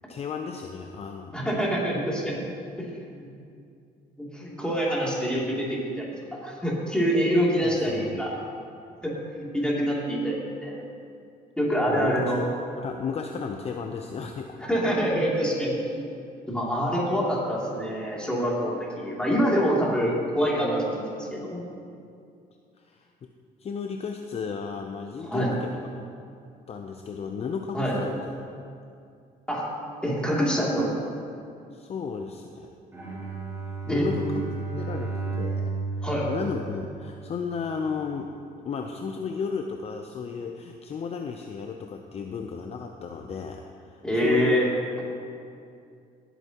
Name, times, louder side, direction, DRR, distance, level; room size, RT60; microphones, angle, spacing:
voice 1, 0.0-1.4 7.6-8.2 11.9-12.5 12.8-14.7 22.8-23.3 23.6-25.9 26.7-28.3 28.6-28.7 31.7-32.7 33.9-34.3 34.8-38.3 38.6-44.6, left 6 dB, 40° left, 4 dB, 0.6 m, -34 dB
voice 2, 1.3-2.4 2.8-2.9 3.2-3.3 4.2-8.3 9.0-9.1 9.4-10.8 11.6-12.4 14.6-15.7 16.5-21.6 25.2-25.5 27.7-27.9 29.5-29.7 30.0-31.1 33.9-34.1 36.0-36.3 44.0-44.7, equal, 5° left, -5 dB, 2.8 m, -26 dB
Bowed string instrument, 32.9-37.3, right 4 dB, 15° right, 3.0 m, -33 dB
18.0 x 8.2 x 3.0 m, 2.4 s
cardioid pair, 110°, 17 cm